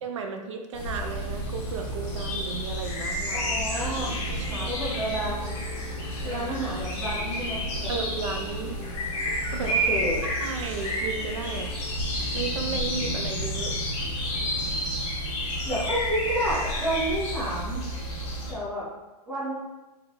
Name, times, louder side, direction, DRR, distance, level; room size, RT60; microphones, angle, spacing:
voice 1, 0.0-3.5 4.3-4.7 6.3-6.4 7.9-8.8 9.1-9.2 9.5-9.7 10.4-11.7 12.3-13.7, right 5 dB, 50° right, 5 dB, 0.5 m, -34 dB
sound 1, 0.7-18.5, equal, 50° left, 1.4 m, -30 dB
sound 2, 3.3-12.0, left 4 dB, 80° left, 0.9 m, -44 dB
voice 2, 3.3-4.1 4.5-5.5 6.2-7.9 9.6-10.2 15.6-17.8 18.5-18.8 19.3-19.5, right 1 dB, 5° right, -10 dB, 1.2 m, -30 dB
3.9 x 2.7 x 3.7 m, 1.1 s
hypercardioid pair, 170°, 20 cm